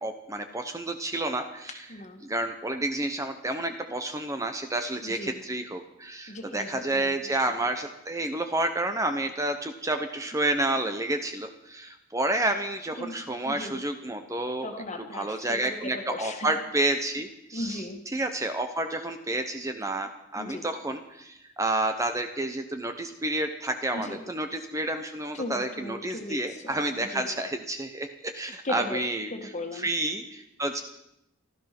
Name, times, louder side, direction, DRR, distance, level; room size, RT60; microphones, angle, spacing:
voice 1, 0.0-1.8 2.2-14.7 15.1-17.8 18.1-29.3 29.7-30.8, right 2 dB, 15° right, 7 dB, 0.8 m, -30 dB
voice 2, 1.9-2.2 5.0-5.4 6.3-7.3 13.0-13.2 13.4-13.8 14.6-16.6 17.5-18.0 20.4-20.7 23.9-24.2 25.3-27.3 28.6-29.0 29.3-29.9, left 1 dB, 35° left, 5 dB, 1.8 m, -37 dB
15.5 x 13.0 x 6.0 m, 0.85 s
head